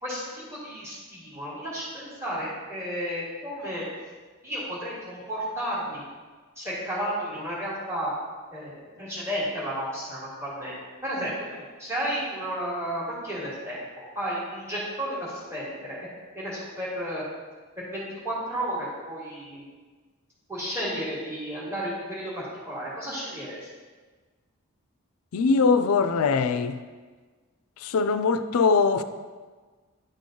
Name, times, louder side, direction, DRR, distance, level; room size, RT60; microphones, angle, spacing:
voice 1, 0.0-3.8 4.4-6.0 6.6-8.1 8.5-10.8 11.0-16.0 16.3-17.2 17.8-19.7 20.5-23.6, equal, 15° right, 1.9 m, -32 dB
voice 2, 25.3-26.8 27.8-29.0, left 4 dB, 75° left, 0.4 m, -22 dB
10.5 x 3.8 x 3.7 m
head